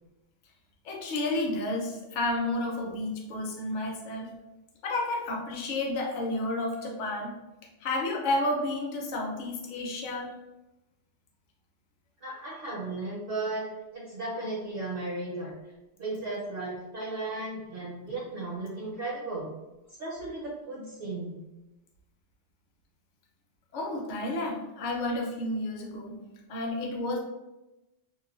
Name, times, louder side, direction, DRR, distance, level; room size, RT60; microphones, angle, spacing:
voice 1, 0.8-4.3 4.8-7.3 7.8-10.3 23.7-26.2 26.5-27.2, left 2 dB, 55° left, -1 dB, 0.6 m, -31 dB
voice 2, 12.2-13.6 13.9-15.5 16.0-19.5 20.0-21.4, right 2 dB, 60° right, -5 dB, 0.8 m, -35 dB
3.0 x 2.1 x 2.3 m, 1.0 s
omnidirectional pair, 1.2 m